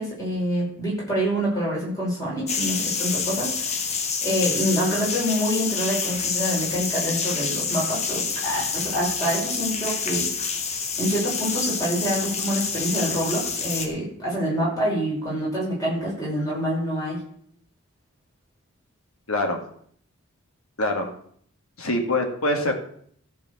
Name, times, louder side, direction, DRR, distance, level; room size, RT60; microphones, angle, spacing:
voice 1, 0.0-3.8 4.2-10.3 11.0-17.2, equal, 15° left, -6 dB, 5.7 m, -26 dB
sound 1, 2.5-13.9, left 5 dB, 30° left, 1.3 m, -27 dB
voice 2, 19.3-19.6 20.8-21.1 21.8-22.7, left 1 dB, 80° left, 3 dB, 2.2 m, -24 dB
14.0 x 5.0 x 7.1 m, 0.63 s
head